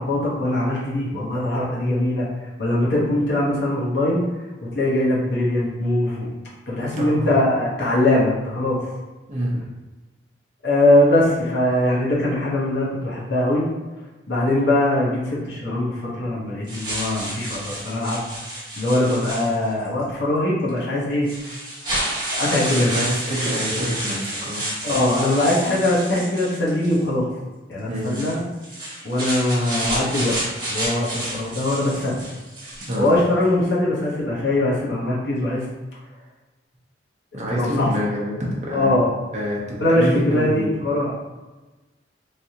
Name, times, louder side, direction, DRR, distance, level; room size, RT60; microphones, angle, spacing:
voice 1, 0.0-2.3 2.6-4.2 4.7-6.3 6.7-8.8 10.6-13.6 14.3-18.2 18.8-21.3 22.3-22.9 24.8-27.3 27.7-28.4 29.0-30.4 30.7-32.2 33.0-35.6 37.5-37.9 38.7-39.1 39.8-41.1, left 1 dB, 65° left, -5 dB, 0.9 m, -21 dB
voice 2, 6.9-7.3 9.3-9.7 22.9-24.7 27.9-28.1 32.9-33.1 37.3-38.9 39.3-40.7, equal, 40° right, -4 dB, 0.7 m, -26 dB
sound 1, 16.7-19.9 20.7-20.8 21.2-27.0 28.0-33.1, right 1 dB, 25° right, 1.1 m, -30 dB
3.3 x 2.7 x 2.8 m, 1.2 s
head